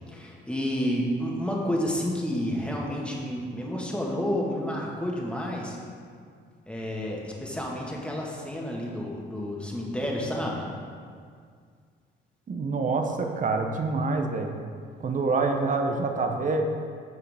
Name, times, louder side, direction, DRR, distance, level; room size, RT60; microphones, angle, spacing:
voice 1, 0.1-5.8 6.7-10.6, equal, 5° left, -3 dB, 1.6 m, -30 dB
voice 2, 12.5-14.5 15.0-16.6, right 3 dB, 40° right, 4 dB, 0.9 m, -26 dB
13.5 x 4.7 x 3.5 m, 2.1 s
cardioid pair, 90°, 20 cm